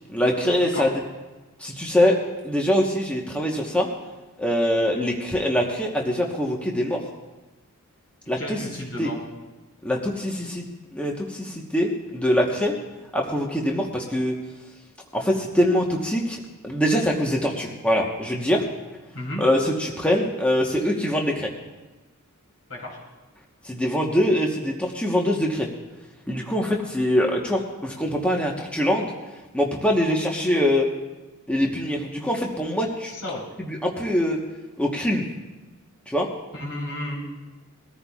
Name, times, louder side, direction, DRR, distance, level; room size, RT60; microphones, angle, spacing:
voice 1, 0.1-0.9 1.6-2.2 2.4-3.9 4.4-7.0 8.3-8.6 9.0-9.1 9.8-10.6 10.9-12.8 13.1-14.3 15.1-18.6 19.4-21.5 23.6-25.7 26.3-29.1 29.5-30.9 31.5-33.1 33.6-34.4 34.8-35.2 36.1-36.3, equal, 5° left, -1 dB, 1.1 m, -23 dB
voice 2, 8.4-9.2 19.1-19.4 22.7-23.0 33.1-33.4 36.5-37.2, left 1 dB, 75° left, -2 dB, 4.5 m, -32 dB
22.5 x 14.0 x 2.4 m, 1.2 s
head